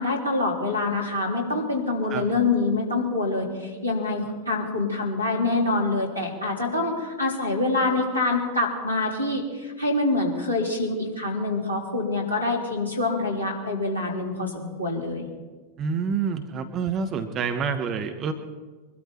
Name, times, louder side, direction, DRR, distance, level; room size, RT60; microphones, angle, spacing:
voice 1, 0.0-15.3, left 2 dB, 90° right, 0 dB, 3.7 m, -26 dB
voice 2, 15.8-18.3, right 6 dB, 30° right, 6 dB, 1.3 m, -27 dB
24.0 x 13.0 x 4.5 m, 1.3 s
figure-of-eight pair, 90°, 0 cm